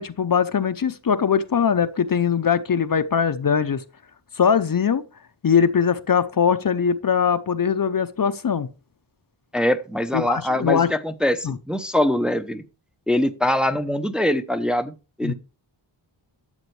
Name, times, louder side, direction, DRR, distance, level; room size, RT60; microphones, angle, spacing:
voice 1, 0.0-3.8 4.4-5.0 5.4-8.7 10.1-10.9 11.4-11.6 15.2-15.3, left 7 dB, 45° left, 0.7 m, -21 dB
voice 2, 9.5-12.6 13.1-14.9 15.2-15.3, left 1 dB, ahead, 0.7 m, -23 dB
12.5 x 8.0 x 3.2 m
wide cardioid pair, 100°, 47 cm